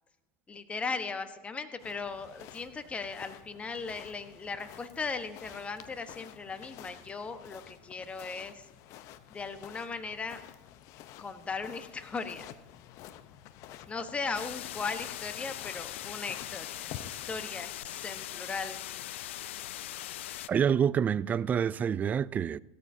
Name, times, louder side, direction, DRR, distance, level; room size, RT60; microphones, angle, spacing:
voice 1, 0.5-8.7 9.3-10.4 11.2-12.5 13.9-18.8, left 4 dB, 20° left, 1.1 m, -38 dB
sound 1, 1.8-17.5, left 11 dB, 55° left, 0.8 m, -50 dB
sound 2, 14.3-20.5, left 13 dB, 80° left, 0.5 m, -40 dB
voice 2, 20.5-22.6, right 8 dB, 25° right, 0.3 m, -27 dB
17.0 x 13.5 x 2.8 m
supercardioid pair, 110°, 6 cm